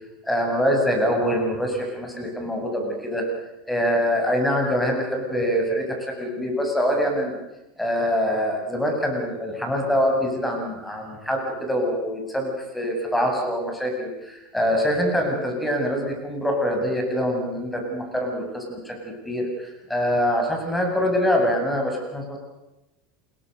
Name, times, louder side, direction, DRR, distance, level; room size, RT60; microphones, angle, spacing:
voice 1, 0.2-3.2 3.7-7.4 7.8-22.4, equal, 5° left, 2 dB, 7.6 m, -24 dB
28.0 x 22.0 x 6.6 m, 0.95 s
figure-of-eight pair, 80°, 0 cm